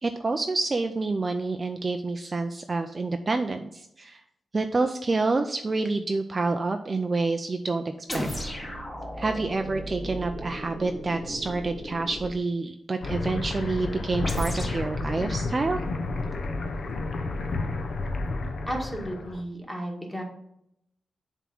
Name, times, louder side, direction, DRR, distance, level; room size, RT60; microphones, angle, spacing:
voice 1, 0.0-4.2 4.5-7.8 8.1-8.3 9.2-15.8, right 3 dB, 30° right, 6 dB, 0.4 m, -28 dB
sound 1, 8.1-12.4 14.2-14.9, equal, 25° left, 2.1 m, -35 dB
sound 2, 13.0-19.4, left 3 dB, 55° left, 0.8 m, -31 dB
voice 2, 18.7-20.2, equal, 5° left, 0 dB, 1.8 m, -33 dB
7.0 x 3.6 x 5.9 m, 0.77 s
wide cardioid pair, 120°, 0 cm